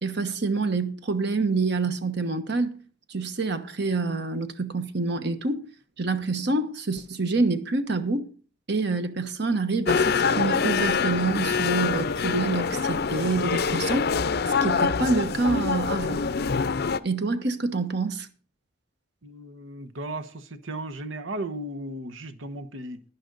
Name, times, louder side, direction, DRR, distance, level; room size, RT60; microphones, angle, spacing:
voice 1, 0.0-2.8 3.1-5.6 6.0-8.3 8.7-14.1 14.6-16.2 17.0-18.3, right 3 dB, 60° right, 1.2 m, -27 dB
sound 1, 9.9-17.0, left 5 dB, 55° left, 0.5 m, -25 dB
voice 2, 19.2-23.0, right 1 dB, 85° right, 1.1 m, -35 dB
11.0 x 11.0 x 3.9 m
head